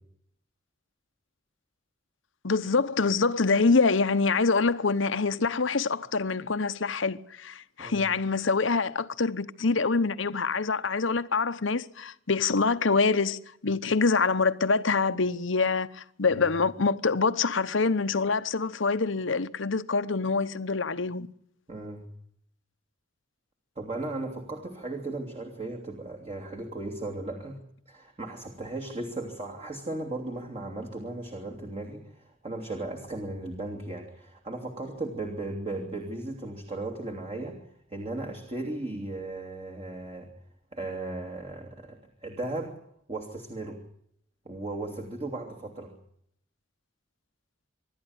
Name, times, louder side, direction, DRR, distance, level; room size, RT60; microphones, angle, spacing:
voice 1, 2.4-21.3, left 4 dB, 70° left, 1.0 m, -25 dB
voice 2, 21.7-22.1 23.8-27.6 27.9-37.6 37.9-40.3 40.7-42.7 43.1-43.8 44.4-45.9, right 2 dB, 30° right, 2.9 m, -36 dB
26.0 x 12.0 x 9.6 m
head